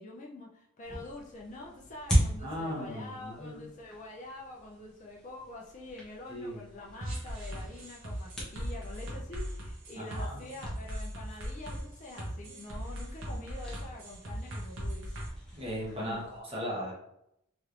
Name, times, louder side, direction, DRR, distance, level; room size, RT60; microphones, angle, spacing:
voice 1, 0.0-15.2 15.9-16.2, left 2 dB, 35° left, -2 dB, 0.4 m, -46 dB
sound 1, 0.8-16.4, equal, 5° left, 0.7 m, -39 dB
voice 2, 2.4-3.6 6.3-6.6 10.0-10.4 15.5-16.9, equal, 25° right, -5 dB, 1.1 m, -37 dB
sound 2, 7.0-15.3, equal, 60° right, 0.9 m, -38 dB
3.1 x 3.0 x 2.5 m, 0.78 s
head